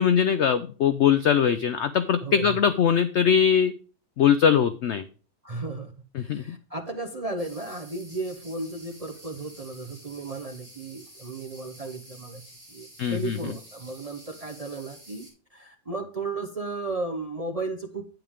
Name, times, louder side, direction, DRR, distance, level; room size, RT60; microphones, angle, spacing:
voice 1, 0.0-3.7 4.2-5.0 6.2-6.6 13.0-13.4, left 8 dB, 85° left, 11 dB, 0.6 m, -21 dB
voice 2, 2.2-2.6 5.4-5.9 6.2-12.4 12.7-18.1, right 3 dB, 40° right, 5 dB, 0.5 m, -34 dB
sound 1, 7.4-15.3, right 1 dB, 10° right, 5.9 m, -50 dB
9.1 x 8.7 x 3.5 m, 0.38 s
omnidirectional pair, 1.7 m